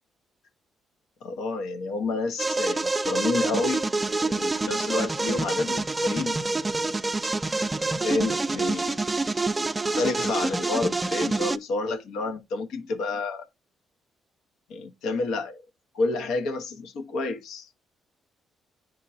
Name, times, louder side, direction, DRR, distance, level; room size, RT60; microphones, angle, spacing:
voice 1, 1.2-3.9 4.2-6.9 7.2-7.4 8.0-9.0 9.9-13.5 14.7-15.6 15.9-17.7, left 3 dB, 85° left, 0.9 m, -29 dB
sound 1, 2.4-11.6, right 3 dB, 20° right, 0.4 m, -27 dB
10.5 x 3.6 x 2.6 m
cardioid pair, 90°, 0 cm